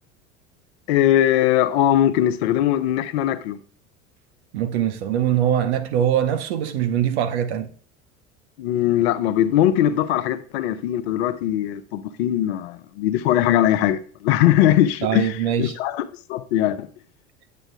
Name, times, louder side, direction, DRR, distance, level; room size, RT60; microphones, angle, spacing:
voice 1, 0.9-3.6 8.6-16.9, left 12 dB, 50° left, 0.7 m, -20 dB
voice 2, 4.5-7.7 15.0-15.7, right 10 dB, 55° right, 0.9 m, -22 dB
8.9 x 8.3 x 2.3 m
figure-of-eight pair, 75°, 40 cm